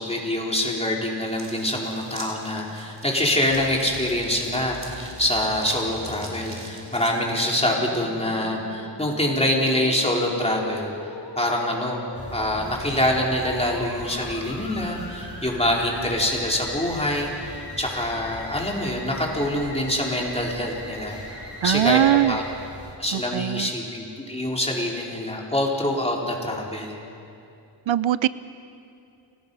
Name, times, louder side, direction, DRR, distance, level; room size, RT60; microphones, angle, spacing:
voice 1, 0.0-10.9 11.4-12.0 12.3-21.2 21.6-22.0 22.3-22.4 23.0-27.0, left 1 dB, 15° left, -2 dB, 4.1 m, -25 dB
sound 1, 1.3-7.1, right 1 dB, 25° right, 4.1 m, -43 dB
Musical instrument, 3.5-22.6, left 2 dB, 65° left, 3.1 m, -41 dB
sound 2, 12.1-23.0, left 1 dB, 30° left, 4.1 m, -41 dB
voice 2, 21.6-22.4 23.1-23.7 27.9-28.3, right 12 dB, 85° right, 17 dB, 0.5 m, -21 dB
29.5 x 18.0 x 5.5 m, 2.6 s
wide cardioid pair, 70°, 45 cm